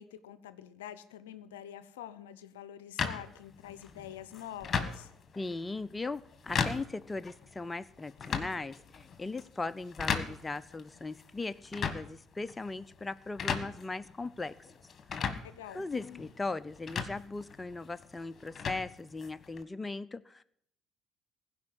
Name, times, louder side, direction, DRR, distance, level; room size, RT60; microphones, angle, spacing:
voice 1, 0.0-5.1 15.4-15.8, left 10 dB, 85° left, 14 dB, 0.6 m, -46 dB
sound 1, 3.0-19.6, left 6 dB, 45° left, 1.5 m, -38 dB
voice 2, 5.4-14.5 15.7-20.4, left 3 dB, 20° left, 13 dB, 0.6 m, -38 dB
16.0 x 5.4 x 9.5 m, 0.70 s
hypercardioid pair, 60°, 0 cm